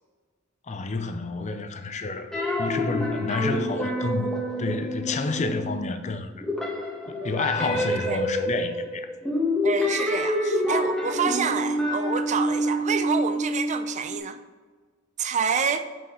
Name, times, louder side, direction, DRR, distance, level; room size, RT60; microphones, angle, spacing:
voice 1, 0.7-2.3 2.6-4.3 4.6-6.4 7.1-9.1, left 3 dB, 35° left, 0.5 m, -29 dB
sound 1, 2.3-6.1 6.4-14.2, equal, 5° left, 1.4 m, -27 dB
voice 2, 7.6-8.2 9.6-14.4 15.2-15.9, right 6 dB, 35° right, 0.4 m, -28 dB
5.6 x 5.5 x 3.9 m
head